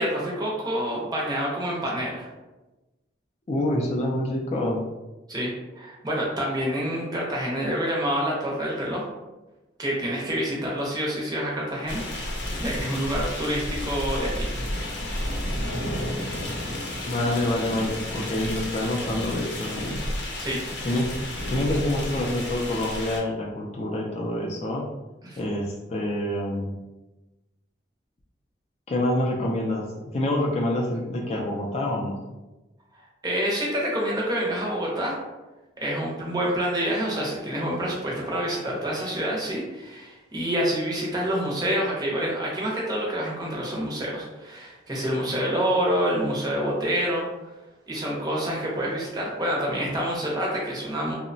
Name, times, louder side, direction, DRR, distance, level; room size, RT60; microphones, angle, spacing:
voice 1, 0.0-2.3 5.3-5.5 5.8-9.0 9.8-12.1 12.6-14.5 20.4-20.6 25.2-25.4 32.9-35.2 35.8-47.2 47.9-51.1, equal, 20° right, -3 dB, 0.6 m, -27 dB
voice 2, 3.5-4.8 17.1-20.1 20.8-21.1 21.5-24.9 25.4-26.7 28.9-32.2, left 1 dB, 35° left, -1 dB, 0.3 m, -27 dB
sound 1, 11.9-23.2, left 1 dB, 75° left, 0.6 m, -31 dB
2.8 x 2.1 x 2.6 m, 1.1 s
head